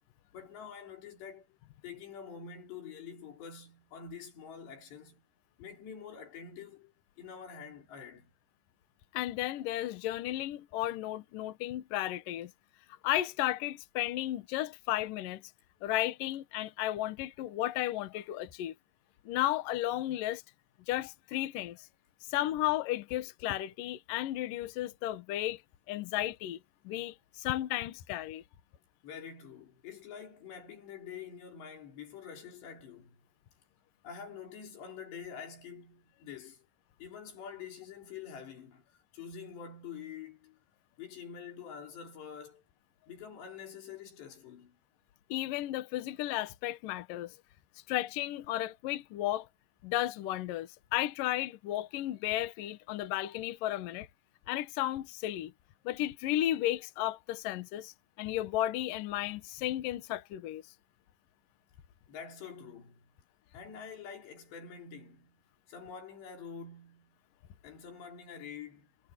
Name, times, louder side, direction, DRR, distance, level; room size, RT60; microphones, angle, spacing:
voice 1, 0.3-1.5 1.8-5.2 5.6-8.3 29.0-33.2 34.0-36.7 37.0-38.8 39.1-40.6 41.0-42.6 43.1-44.8 62.1-63.1 63.5-65.4 65.7-67.2 67.6-68.9, left 7 dB, 60° left, 6.3 m, -46 dB
voice 2, 9.1-12.5 13.0-15.4 15.8-18.7 19.3-20.4 20.9-21.9 22.3-25.6 25.9-26.6 26.8-28.4 45.3-47.3 47.9-49.5 49.8-54.1 54.5-55.5 55.8-60.6, left 14 dB, 80° left, 1.9 m, -34 dB
omnidirectional pair, 5.9 m